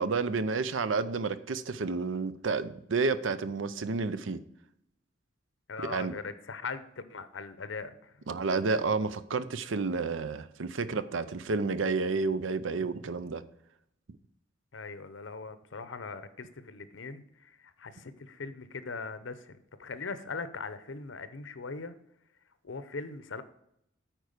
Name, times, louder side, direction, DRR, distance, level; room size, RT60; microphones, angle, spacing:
voice 1, 0.0-4.4 5.9-6.1 8.3-13.4, right 4 dB, 80° right, 13 dB, 0.6 m, -30 dB
voice 2, 5.7-8.2 14.7-21.9 22.6-23.4, left 4 dB, 75° left, 12 dB, 0.7 m, -40 dB
9.0 x 4.7 x 6.6 m, 0.76 s
head